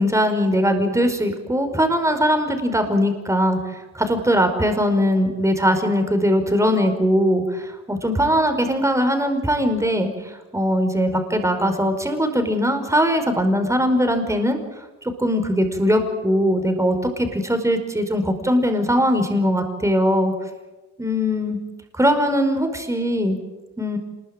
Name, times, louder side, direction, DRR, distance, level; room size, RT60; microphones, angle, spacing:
voice 1, 0.0-3.6 3.9-14.6 15.2-20.3 21.0-21.6 21.9-23.4 23.8-24.0, equal, 10° right, 6 dB, 5.1 m, -20 dB
26.0 x 21.5 x 8.9 m, 1.1 s
cardioid pair, 90°, 30 cm